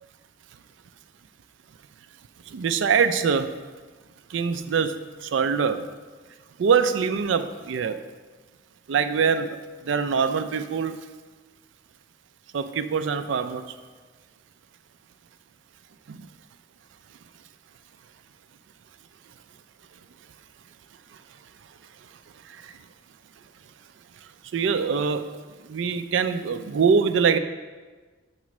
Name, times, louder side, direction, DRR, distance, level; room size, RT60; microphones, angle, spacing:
voice 1, 2.5-3.6 4.3-5.9 6.6-8.0 8.9-11.1 12.5-13.6 16.1-16.3 22.5-22.7 24.5-27.4, right 6 dB, 70° right, 9 dB, 0.4 m, -24 dB
7.3 x 3.1 x 5.9 m, 1.4 s
head